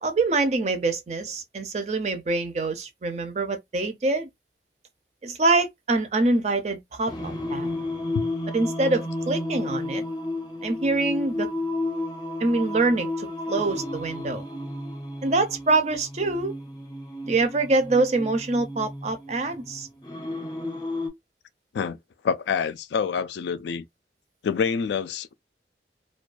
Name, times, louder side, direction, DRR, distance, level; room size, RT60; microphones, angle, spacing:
voice 1, 0.0-4.3 5.2-7.7 8.5-10.0 10.6-11.5 12.4-14.4 15.2-16.5 17.2-19.9, right 3 dB, 40° right, 0.5 m, -25 dB
Singing, 7.1-21.1, left 2 dB, 20° left, 0.6 m, -32 dB
voice 2, 22.2-23.8 24.4-25.3, left 6 dB, 75° left, 0.3 m, -26 dB
2.3 x 2.2 x 2.4 m
head